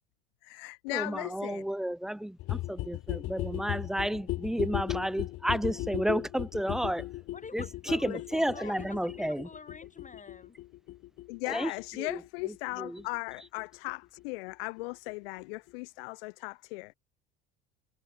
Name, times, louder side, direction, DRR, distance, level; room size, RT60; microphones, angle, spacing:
voice 1, 0.4-1.7 7.9-8.2 8.6-8.7 11.3-16.9, left 28 dB, 80° left, 1.0 m, -38 dB
voice 2, 0.9-7.1 7.5-9.5 11.5-11.7 12.0-12.2 12.8-13.0, right 1 dB, ahead, 0.3 m, -31 dB
sound 1, 2.4-13.9 14.2-14.3 14.5-14.6 14.8-14.9 15.1-15.2 15.4-15.5 15.7-15.8, left 16 dB, 50° left, 0.6 m, -37 dB
voice 3, 7.3-10.6, left 5 dB, 25° left, 6.2 m, -47 dB
hypercardioid pair, 80°, 29 cm